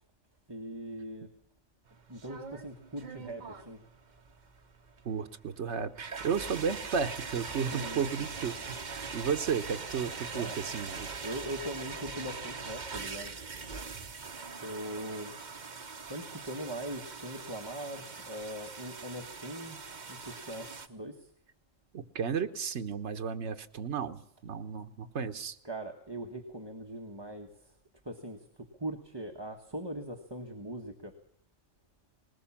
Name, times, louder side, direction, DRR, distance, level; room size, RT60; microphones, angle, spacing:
voice 1, 0.5-1.3 2.1-3.8 6.3-6.7 7.7-8.3 10.3-10.6 10.9-13.3 14.6-15.3 16.1-19.8 20.1-21.3 25.6-27.8 28.0-31.1, right 1 dB, 20° right, 3 dB, 1.4 m, -41 dB
sound 1, 1.9-20.9, right 4 dB, 40° right, 1.1 m, -42 dB
voice 2, 5.0-11.1 21.9-25.6, right 6 dB, 65° right, 6 dB, 1.4 m, -33 dB
20.0 x 19.5 x 7.2 m, 0.72 s
omnidirectional pair, 1.3 m